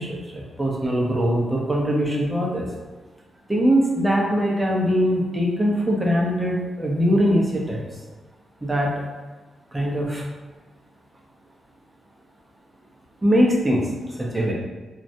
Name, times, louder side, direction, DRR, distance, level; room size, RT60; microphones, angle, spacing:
voice 1, 0.0-2.7 3.5-7.9 8.6-8.9 9.7-10.2 13.2-13.9 14.2-14.5, equal, 15° right, -2 dB, 0.5 m, -22 dB
2.2 x 2.0 x 2.7 m, 1.2 s
cardioid pair, 80°, 0 cm